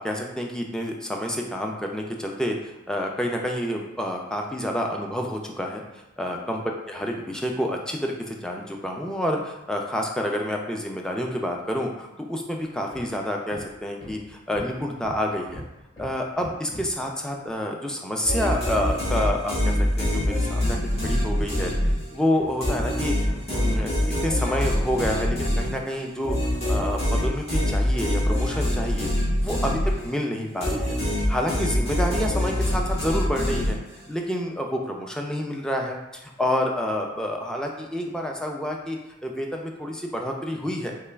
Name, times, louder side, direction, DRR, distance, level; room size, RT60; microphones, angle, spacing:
voice 1, 0.0-6.6 6.9-15.6 16.0-21.7 22.1-23.2 23.5-26.4 26.7-29.1 29.4-29.8 30.0-31.0 31.3-33.8 34.1-36.0 36.2-40.9, equal, 5° left, 1 dB, 0.3 m, -28 dB
Hammer, 12.9-13.2 13.5-17.1 18.8-25.7 26.3-28.2, left 1 dB, 75° left, 0.9 m, -42 dB
sound 1, 18.2-22.2 22.6-30.2 30.6-34.1, left 1 dB, 35° left, 1.1 m, -25 dB
3.3 x 2.2 x 3.2 m, 1.0 s
head